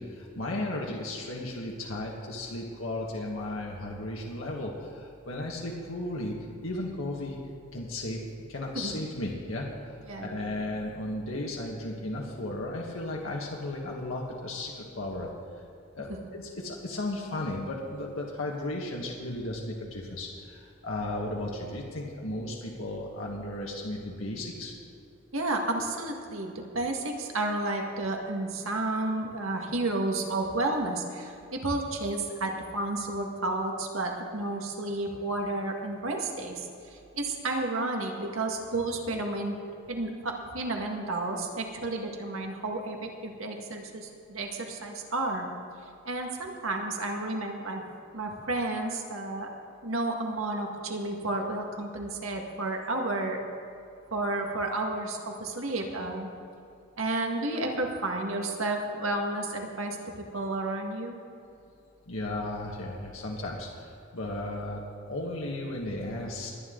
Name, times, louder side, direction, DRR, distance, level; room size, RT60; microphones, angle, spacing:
voice 1, 0.0-6.4 6.6-7.4 7.7-8.2 8.5-15.3 15.9-24.7 62.1-66.5, left 1 dB, 85° left, -2 dB, 1.5 m, -35 dB
voice 2, 10.1-10.6 16.1-16.2 25.3-39.6 39.9-45.4 46.1-47.8 48.1-49.5 49.8-53.4 54.1-56.3 57.0-61.2, right 2 dB, 90° right, 2 dB, 1.8 m, -31 dB
21.5 x 9.8 x 3.9 m, 2.6 s
head